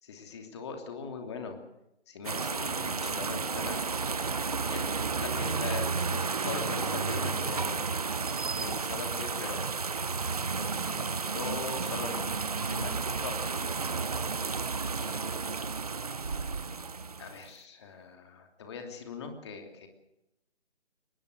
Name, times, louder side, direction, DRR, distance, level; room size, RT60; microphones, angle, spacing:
voice 1, 0.0-1.6 2.1-3.9 4.4-4.8 5.2-7.8 8.5-14.1 14.5-15.6 17.2-19.9, left 5 dB, 25° left, 5 dB, 2.9 m, -41 dB
sound 1, 2.2-17.5, right 4 dB, 35° right, 0.8 m, -32 dB
23.5 x 20.5 x 6.5 m, 0.88 s
figure-of-eight pair, 155°, 34 cm